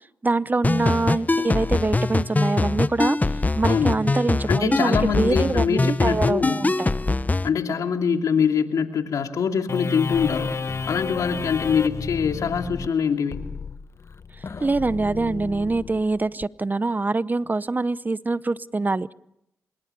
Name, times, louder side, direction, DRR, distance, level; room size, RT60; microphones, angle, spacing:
voice 1, 0.2-3.2 3.6-6.9 14.6-19.1, right 3 dB, 30° right, 18 dB, 0.8 m, -24 dB
sound 1, 0.6-7.5, left 2 dB, 25° left, 1.0 m, -23 dB
voice 2, 3.6-4.0 4.5-6.6 7.4-10.5 10.9-13.5, left 6 dB, 75° left, 5 dB, 2.7 m, -24 dB
sound 2, 9.7-16.5, left 4 dB, 50° left, 1.2 m, -32 dB
26.0 x 22.0 x 6.9 m, 0.82 s
supercardioid pair, 45°, 6 cm